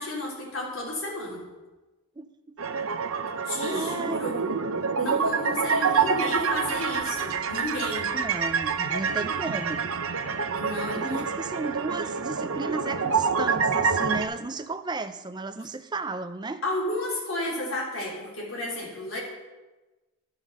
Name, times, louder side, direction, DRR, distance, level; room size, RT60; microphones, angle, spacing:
voice 1, 0.0-1.4 3.4-4.5 5.0-8.1 10.5-11.2 16.6-19.2, left 1 dB, 70° left, -4 dB, 3.5 m, -32 dB
voice 2, 2.2-2.6 3.7-4.3 6.0-6.1 8.1-9.9 10.9-16.6, right 3 dB, 20° right, 10 dB, 0.4 m, -34 dB
sound 1, 2.6-14.3, right 5 dB, 80° right, 0.6 m, -27 dB
12.0 x 5.5 x 6.4 m, 1.1 s
head